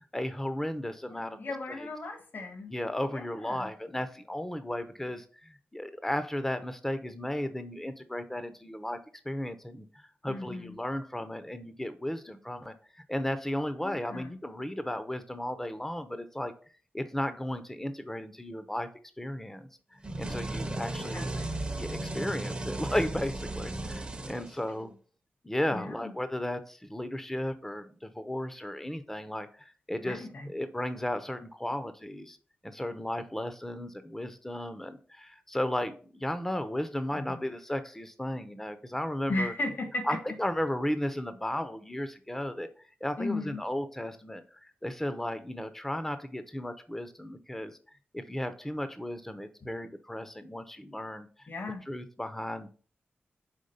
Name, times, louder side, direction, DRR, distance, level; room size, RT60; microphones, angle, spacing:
voice 1, 0.0-1.5 1.8-1.9 2.7-9.0 9.2-16.5 16.9-18.9 19.2-21.3 21.8-24.9 25.4-32.4 32.6-39.5 40.0-42.7 43.0-47.8 48.1-51.5 51.9-52.7, left 1 dB, 10° left, 10 dB, 0.7 m, -35 dB
voice 2, 1.1-2.7 3.1-3.7 10.3-10.8 13.8-14.4 21.0-21.6 25.7-26.1 30.0-30.5 37.1-37.4 39.3-40.2 43.2-43.6 51.5-51.9, left 2 dB, 60° left, 4 dB, 1.5 m, -36 dB
sound 1, 20.0-24.9, right 2 dB, 25° right, 0.8 m, -35 dB
5.1 x 3.6 x 5.4 m, 0.41 s
cardioid pair, 65°, 4 cm